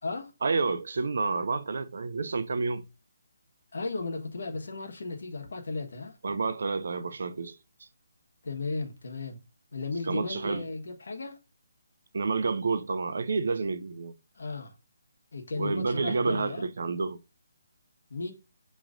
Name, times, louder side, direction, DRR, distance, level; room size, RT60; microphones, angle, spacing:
voice 1, 0.4-2.8 6.2-7.6 10.1-10.7 12.1-14.2 15.6-17.2, right 4 dB, 60° right, 0.5 m, -29 dB
voice 2, 3.7-6.2 8.4-9.4 9.7-11.4 14.3-14.7 15.3-16.6 18.1-18.3, left 3 dB, 70° left, 1.2 m, -35 dB
6.4 x 3.0 x 2.4 m
hypercardioid pair, 175°, 0 cm